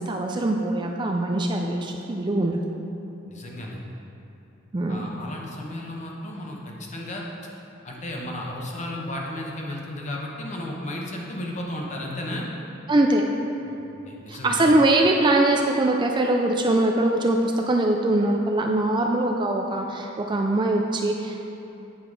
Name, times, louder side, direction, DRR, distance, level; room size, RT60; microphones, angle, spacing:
voice 1, 0.0-2.6 4.7-5.1 12.9-13.3 14.3-21.4, right 2 dB, 25° right, 2 dB, 0.4 m, -22 dB
voice 2, 3.3-3.8 4.9-7.2 7.8-12.5 13.7-14.6, left 1 dB, 35° left, -2 dB, 1.0 m, -34 dB
8.7 x 5.7 x 4.7 m, 2.8 s
head